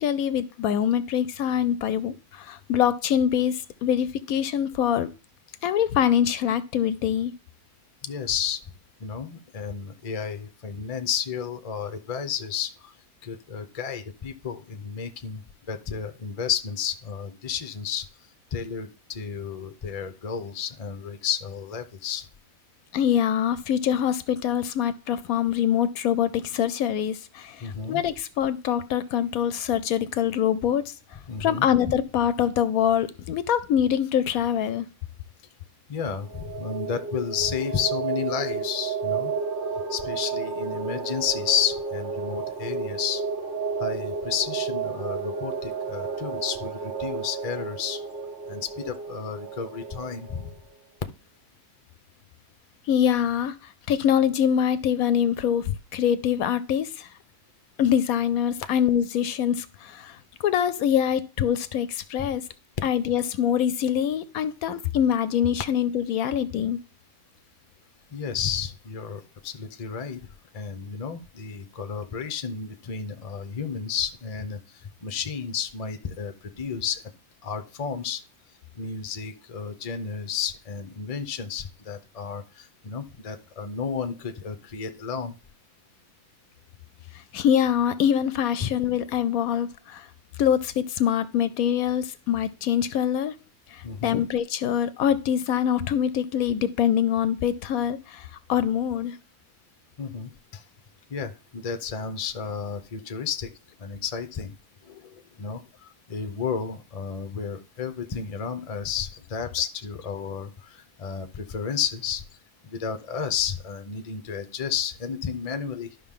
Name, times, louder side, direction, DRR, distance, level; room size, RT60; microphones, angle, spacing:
voice 1, 0.0-5.1 5.6-7.3 22.9-30.9 31.4-34.9 52.9-53.6 53.9-57.1 57.8-60.2 60.4-62.4 62.8-66.8 87.3-90.1 90.4-93.3 93.7-99.2, left 9 dB, 75° left, 14 dB, 1.0 m, -24 dB
voice 2, 8.0-8.6 9.0-12.9 13.2-15.4 15.7-18.1 18.5-22.3 27.6-28.0 31.3-31.7 35.9-39.3 39.9-43.2 43.8-48.0 48.5-50.5 68.1-70.2 70.5-77.0 77.4-78.2 78.8-85.3 88.6-88.7 93.8-94.2 100.0-100.6 101.1-103.5 103.8-104.5 104.8-105.6 106.1-112.2 112.6-115.9, left 7 dB, 35° left, 9 dB, 0.6 m, -32 dB
sound 1, 36.2-50.6, right 5 dB, 50° right, 1.3 m, -32 dB
12.0 x 5.7 x 3.7 m, 0.33 s
omnidirectional pair, 1.6 m